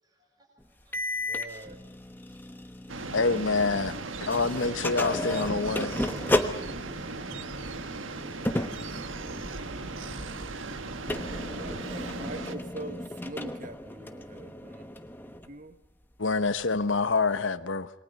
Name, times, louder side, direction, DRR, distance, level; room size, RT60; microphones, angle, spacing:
voice 1, 0.0-3.2, right 2 dB, 20° right, 0 dB, 6.9 m, -68 dB
sound 1, 0.9-4.0 4.3-15.5, left 1 dB, 10° left, 1.1 m, -35 dB
voice 2, 1.2-1.8 11.5-14.9 15.2-15.8, right 2 dB, 40° right, 9 dB, 1.4 m, -43 dB
sound 2, 2.9-12.5, right 3 dB, 90° right, 1.5 m, -37 dB
voice 3, 3.1-3.9 4.2-5.9 16.2-17.9, left 4 dB, 80° left, 12 dB, 1.1 m, -26 dB
27.5 x 22.5 x 5.4 m, 0.84 s
head